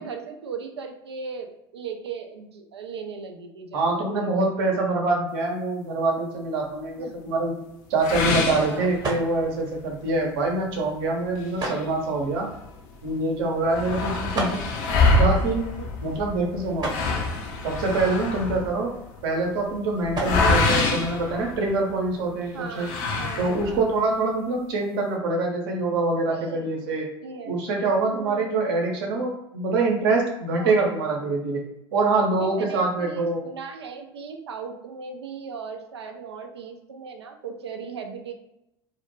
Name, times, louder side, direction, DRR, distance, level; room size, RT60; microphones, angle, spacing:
voice 1, 0.0-4.3 7.0-7.1 8.6-8.9 15.8-15.9 22.5-23.9 26.3-26.7 27.2-27.6 28.0-28.6 30.6-31.4 32.4-38.3, right 5 dB, 80° right, 5 dB, 0.4 m, -38 dB
voice 2, 3.7-7.5 7.9-12.5 13.0-14.6 15.1-15.6 16.0-16.9 17.6-19.0 19.2-22.9 23.4-27.1 27.5-31.6 31.9-33.4, right 3 dB, 65° right, 1 dB, 0.8 m, -25 dB
sound 1, 7.4-21.7, right 1 dB, 30° right, 0.9 m, -39 dB
sound 2, 8.0-9.5 9.9-10.0 10.5-10.6 11.4-12.7 13.0-13.1 13.3-22.1 22.7-23.9, left 3 dB, 60° left, 0.6 m, -25 dB
2.4 x 2.1 x 3.1 m, 0.85 s
figure-of-eight pair, 70°, 13 cm